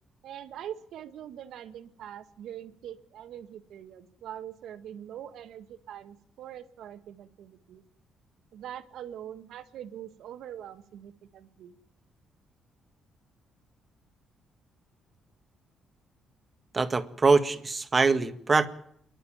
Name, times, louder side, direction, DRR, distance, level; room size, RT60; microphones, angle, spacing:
voice 1, 0.2-7.8 8.5-11.8, right 10 dB, 75° right, 10 dB, 1.7 m, -43 dB
voice 2, 16.7-18.7, right 4 dB, 30° right, 11 dB, 1.8 m, -23 dB
27.5 x 11.5 x 8.8 m, 0.70 s
cardioid pair, 90°, 0 cm